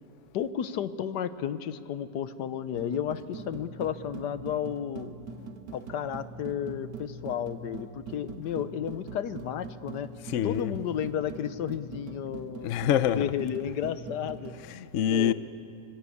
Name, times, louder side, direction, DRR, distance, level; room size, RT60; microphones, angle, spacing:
voice 1, 0.3-5.1 5.7-10.1 10.4-12.7 13.1-14.5 15.1-15.3, left 9 dB, 75° left, 1.4 m, -32 dB
sound 1, 2.8-14.6, right 4 dB, 75° right, 1.8 m, -43 dB
voice 2, 10.3-10.7 12.6-13.2 14.7-15.3, left 9 dB, 60° left, 0.8 m, -25 dB
25.0 x 19.5 x 8.5 m
omnidirectional pair, 1.8 m